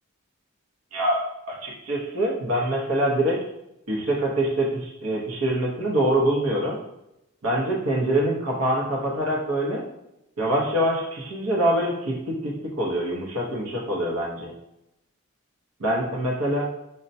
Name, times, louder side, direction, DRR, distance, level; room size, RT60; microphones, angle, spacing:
voice 1, 0.9-3.4 3.9-6.8 7.4-9.8 10.4-14.5 15.8-16.7, right 1 dB, 80° right, -3 dB, 0.8 m, -25 dB
5.3 x 2.1 x 2.6 m, 0.86 s
head